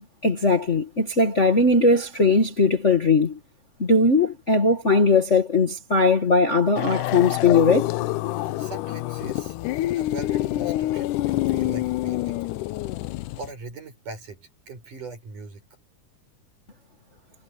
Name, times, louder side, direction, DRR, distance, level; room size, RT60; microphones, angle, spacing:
voice 1, 0.2-3.4 3.8-7.9, left 3 dB, 25° left, 1.8 m, -19 dB
sound 1, 6.8-13.5, left 16 dB, 85° left, 2.2 m, -27 dB
voice 2, 8.6-9.6 10.0-12.4 13.4-15.6, right 3 dB, 80° right, 9.2 m, -40 dB
omnidirectional pair, 3.6 m